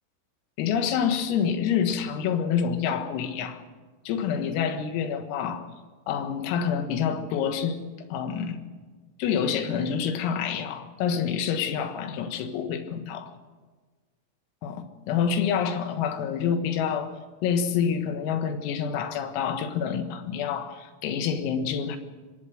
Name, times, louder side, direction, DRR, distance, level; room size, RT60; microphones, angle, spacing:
voice 1, 0.6-3.6 4.1-5.7 6.1-7.8 8.1-8.6 9.2-13.3 14.6-17.1 17.4-22.0, left 7 dB, 85° left, 7 dB, 4.3 m, -27 dB
24.5 x 19.0 x 6.4 m, 1.4 s
omnidirectional pair, 5.9 m